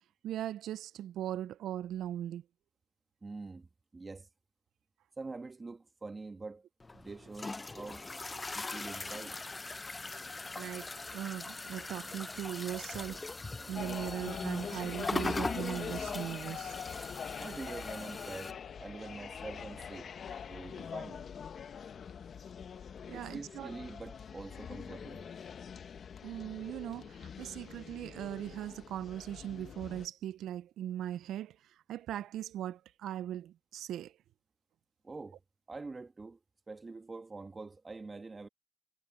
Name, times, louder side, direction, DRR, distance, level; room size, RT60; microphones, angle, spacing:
voice 1, 0.2-2.4 8.3-8.6 10.6-13.2 13.7-16.8 23.1-23.7 26.2-31.6 31.9-34.1, right 11 dB, 80° right, 0.4 m, -39 dB
voice 2, 3.2-3.7 3.9-4.3 5.2-6.7 6.9-8.0 8.5-9.4 17.4-20.1 20.5-21.2 23.1-25.2 35.0-35.4 35.7-36.4 36.7-38.5, right 3 dB, 25° right, 2.0 m, -45 dB
sound 1, 6.8-18.5, left 3 dB, 20° left, 0.7 m, -41 dB
sound 2, 13.8-30.1, left 7 dB, 55° left, 1.4 m, -44 dB
cardioid pair, 90°, 0 cm